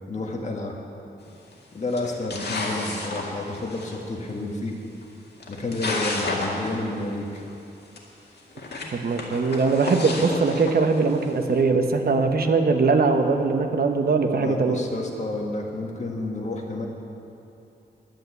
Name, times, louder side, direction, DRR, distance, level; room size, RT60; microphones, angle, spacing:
voice 1, 0.1-0.7 1.7-4.7 5.5-7.4 14.3-16.9, left 2 dB, 45° left, 0 dB, 1.7 m, -30 dB
sound 1, 1.3-1.5 1.9-4.0 5.0-5.1 5.4-6.7 7.0-7.1 7.3-7.4 8.0-8.1 8.5-11.3, left 2 dB, 70° left, 1.9 m, -31 dB
voice 2, 8.9-14.8, right 4 dB, 60° right, 5 dB, 1.1 m, -21 dB
11.0 x 9.2 x 8.3 m, 2.8 s
wide cardioid pair, 130°, 17 cm